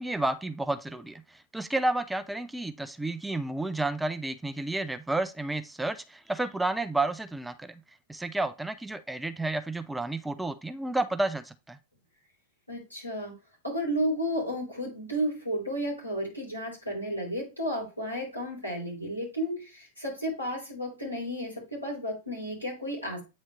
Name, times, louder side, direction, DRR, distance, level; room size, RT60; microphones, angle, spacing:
voice 1, 0.0-7.8 8.1-11.8, right 2 dB, 5° right, 11 dB, 0.4 m, -31 dB
voice 2, 12.7-13.3 13.6-23.2, equal, 90° left, -3 dB, 3.1 m, -32 dB
8.6 x 4.2 x 3.0 m, 0.27 s
figure-of-eight pair, 90°, 0 cm